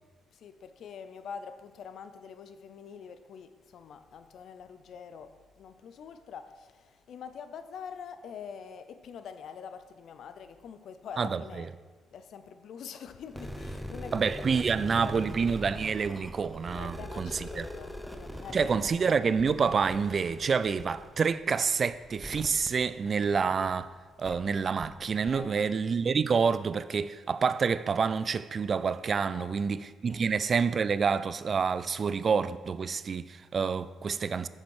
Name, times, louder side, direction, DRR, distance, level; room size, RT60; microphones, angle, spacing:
voice 1, 0.3-11.7 12.1-15.3 16.7-19.1 25.3-25.5 29.3-29.6 30.0-30.2, left 6 dB, 65° left, 0.5 m, -45 dB
voice 2, 11.2-11.7 14.1-17.7 18.5-23.9 24.2-34.5, right 5 dB, 45° right, 0.3 m, -28 dB
sound 1, 13.3-23.7 24.2-24.4 24.8-24.9 25.3-25.4, equal, ahead, 0.6 m, -42 dB
7.1 x 6.7 x 4.7 m
cardioid pair, 90°, 0 cm